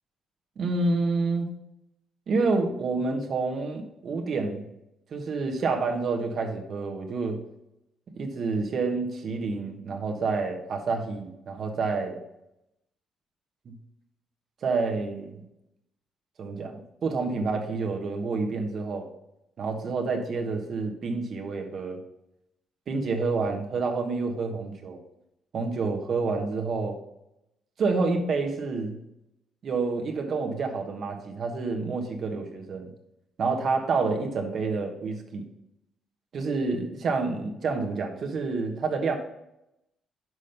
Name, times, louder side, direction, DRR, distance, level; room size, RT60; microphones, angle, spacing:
voice 1, 0.6-1.5 2.3-4.7 5.1-7.4 8.1-12.2 13.6-13.8 14.6-15.4 16.4-19.1 19.6-22.0 22.9-25.0 25.5-27.0 27.8-29.0 29.6-32.9 33.4-35.5 36.3-39.1, right 4 dB, 60° right, 3 dB, 1.3 m, -28 dB
6.2 x 5.1 x 5.7 m, 0.86 s
supercardioid pair, 60°, 0 cm